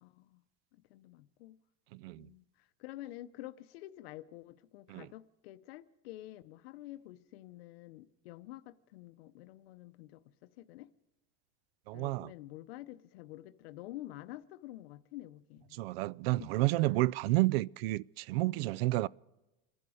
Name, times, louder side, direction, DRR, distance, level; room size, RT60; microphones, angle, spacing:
voice 1, 0.0-0.4 0.7-1.6 2.2-10.9 11.9-15.8 16.4-16.5, left 15 dB, 85° left, 0.7 m, -49 dB
voice 2, 1.9-2.3 4.9-5.1 11.9-12.3 15.7-19.1, right 19 dB, 80° right, 0.5 m, -30 dB
26.0 x 11.0 x 4.9 m
supercardioid pair, 165°, 30 cm